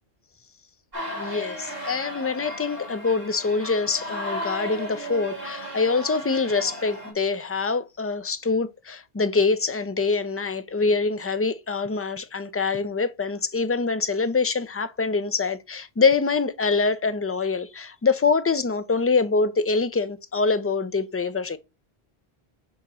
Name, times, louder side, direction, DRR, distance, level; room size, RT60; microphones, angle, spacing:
sound 1, 0.9-7.1, equal, 65° right, 3.1 m, -35 dB
voice 1, 1.2-21.6, left 4 dB, 20° left, 0.3 m, -25 dB
7.1 x 3.0 x 6.0 m
omnidirectional pair, 1.1 m